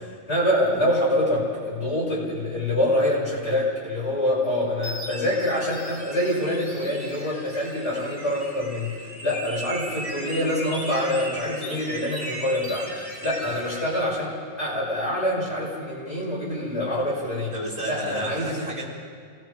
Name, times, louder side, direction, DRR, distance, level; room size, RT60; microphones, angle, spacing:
voice 1, 0.3-12.9 13.2-17.5 17.8-18.7, left 1 dB, 85° left, -7 dB, 6.5 m, -25 dB
sound 1, 3.9-14.0, right 1 dB, 65° left, 5.5 m, -38 dB
voice 2, 17.5-18.8, right 1 dB, 30° right, -5 dB, 4.4 m, -32 dB
28.5 x 18.5 x 5.1 m, 2.1 s
omnidirectional pair, 1.1 m